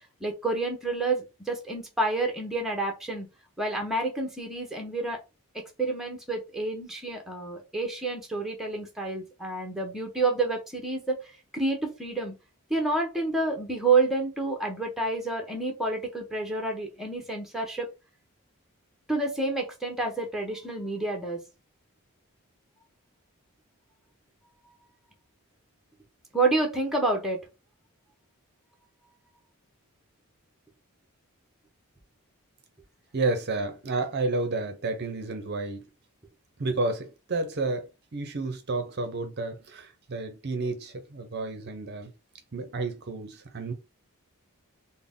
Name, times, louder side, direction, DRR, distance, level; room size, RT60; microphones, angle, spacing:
voice 1, 0.2-3.3 3.6-5.2 5.8-11.2 11.5-12.3 12.7-17.9 19.1-21.4 26.3-27.4, right 3 dB, ahead, 0.8 m, -29 dB
voice 2, 33.1-35.8 36.6-42.1 42.5-43.7, right 3 dB, 45° right, 0.6 m, -31 dB
3.8 x 2.1 x 3.5 m
head